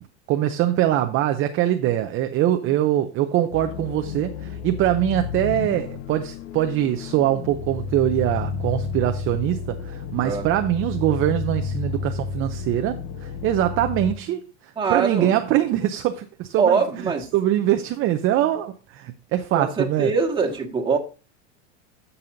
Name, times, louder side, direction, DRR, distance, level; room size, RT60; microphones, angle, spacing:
voice 1, 0.3-14.4 14.9-20.1, right 12 dB, 35° right, 0.7 m, -23 dB
sound 1, 3.5-14.1, left 5 dB, 45° left, 0.8 m, -31 dB
voice 2, 14.8-15.3 16.6-17.3 19.5-21.0, right 5 dB, 15° right, 1.8 m, -23 dB
14.5 x 5.6 x 2.7 m
supercardioid pair, 135°, 35 cm